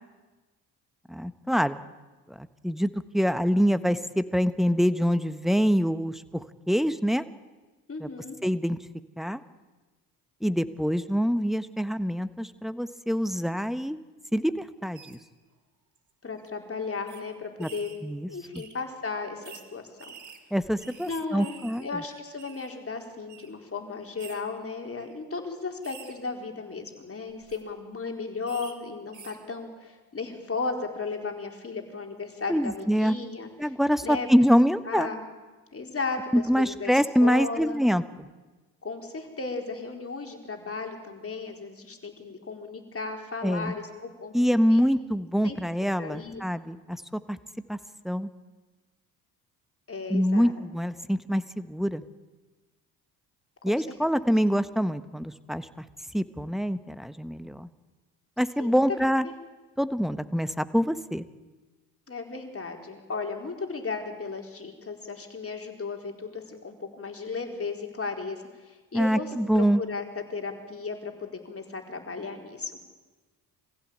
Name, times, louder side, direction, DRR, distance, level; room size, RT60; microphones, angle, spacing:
voice 1, 1.1-1.8 2.3-7.2 8.0-8.1 8.4-8.8 9.2-9.4 10.4-14.0 14.3-15.2 17.6-17.7 18.0-18.3 18.5-18.6 20.5-21.9 32.5-33.2 33.6-35.1 36.3-38.3 43.4-43.7 44.3-47.4 47.7-47.8 48.0-48.3 50.1-52.0 53.6-55.8 56.1-57.7 58.4-59.2 59.8-61.2 68.9-69.8, equal, ahead, 12 dB, 1.3 m, -25 dB
voice 2, 7.9-8.4 16.2-17.9 18.3-20.1 21.1-33.5 34.0-34.3 34.9-35.2 35.7-36.9 37.2-37.8 38.8-44.8 45.4-45.6 46.0-46.4 49.9-50.5 53.7-53.9 58.6-58.8 59.2-59.3 62.1-72.8, left 4 dB, 30° left, 3 dB, 4.5 m, -35 dB
sound 1, 14.9-15.2 16.0-16.1 16.4-16.5 17.1-17.2 17.6-18.0 18.5-18.7 19.4-19.6 20.0-21.9 22.1-22.7 23.3-23.5 24.2-24.4 25.0-25.2 25.8-26.1 27.3-27.6 28.5-28.7 29.1-29.4, right 6 dB, 40° right, 3.5 m, -48 dB
25.0 x 16.0 x 8.8 m, 1.3 s
hypercardioid pair, 60°, 45 cm